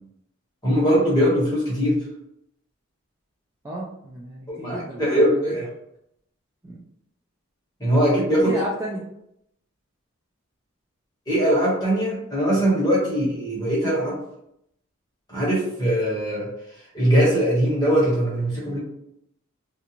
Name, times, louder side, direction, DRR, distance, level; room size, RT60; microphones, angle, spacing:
voice 1, 0.6-2.0 4.5-5.7 7.8-8.5 11.3-14.2 15.3-16.5 16.9-18.8, equal, 20° left, -6 dB, 1.1 m, -21 dB
voice 2, 3.6-5.5 6.6-6.8 8.4-9.0, equal, 15° right, -5 dB, 0.3 m, -33 dB
2.5 x 2.3 x 2.9 m, 0.75 s
head